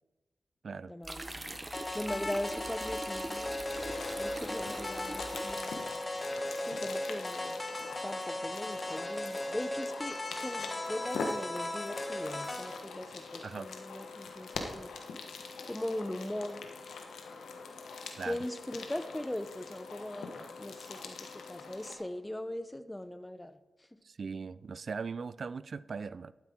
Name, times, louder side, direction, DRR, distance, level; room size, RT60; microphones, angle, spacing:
voice 1, 0.9-1.4 1.7-3.6 4.2-5.9 6.6-14.9 15.7-17.0 18.2-23.9, left 1 dB, 15° left, 0.8 m, -40 dB
sound 1, 1.0-6.3, right 1 dB, 30° right, 1.2 m, -43 dB
sound 2, 1.7-12.8, left 1 dB, 30° left, 1.6 m, -37 dB
sound 3, 3.6-21.9, left 4 dB, 90° left, 1.2 m, -43 dB
voice 2, 24.0-26.3, right 5 dB, 65° right, 0.4 m, -39 dB
12.0 x 9.6 x 3.7 m
supercardioid pair, 40°, 0 cm